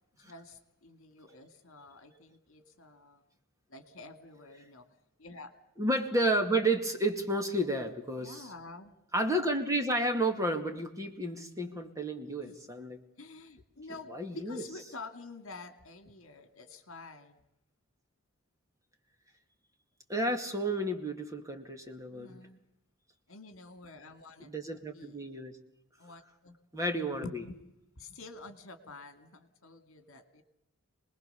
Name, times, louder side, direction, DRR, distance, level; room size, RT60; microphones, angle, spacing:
voice 1, 0.2-3.2 3.7-4.9 5.2-5.5 8.2-8.9 12.4-12.5 13.2-17.4 22.1-22.6 23.3-24.5 24.9-25.2 26.0-26.5 27.2-27.6 28.0-30.4, left 3 dB, 60° left, 10 dB, 2.4 m, -48 dB
voice 2, 5.8-8.5 9.1-13.0 14.1-14.6 20.1-22.4 24.4-25.5 26.7-27.4, right 1 dB, 15° right, 5 dB, 2.2 m, -31 dB
29.0 x 20.0 x 7.0 m, 0.84 s
head